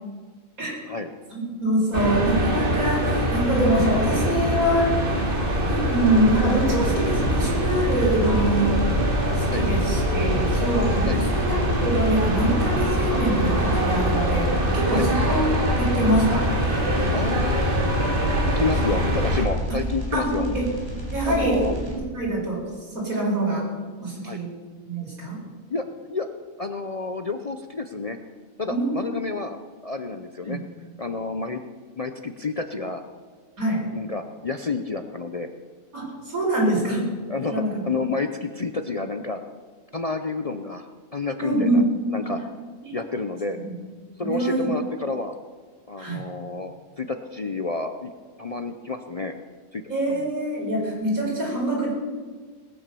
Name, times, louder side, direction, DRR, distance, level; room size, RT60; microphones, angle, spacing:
voice 1, 1.3-5.0 5.7-8.8 9.4-16.5 18.8-19.0 20.1-20.7 21.1-21.6 21.9-22.7 22.9-23.7 24.0-24.5 24.8-25.4 28.7-29.1 30.4-30.6 33.6-33.9 35.9-37.1 37.5-37.8 41.4-41.9 42.2-42.3 42.8-43.0 43.6-43.7 44.2-44.7 46.0-46.2 49.9-51.9, right 1 dB, 90° right, -3 dB, 5.3 m, -24 dB
sound 1, 1.9-19.4, equal, 40° right, 2.6 m, -24 dB
sound 2, 6.0-22.0, equal, 20° right, 3.3 m, -31 dB
voice 2, 17.1-17.6 18.5-20.5 21.2-21.7 24.2-24.4 25.7-25.8 26.1-26.3 26.6-28.2 28.6-30.6 31.0-31.6 32.0-33.0 33.9-35.5 37.3-39.4 39.9-41.8 42.1-42.4 42.9-43.6 44.2-45.3 45.9-48.1 48.4-49.3 49.7-49.8 50.1-50.3, left 3 dB, 40° left, 7 dB, 0.6 m, -30 dB
19.0 x 8.8 x 6.9 m, 1.5 s
omnidirectional pair, 1.4 m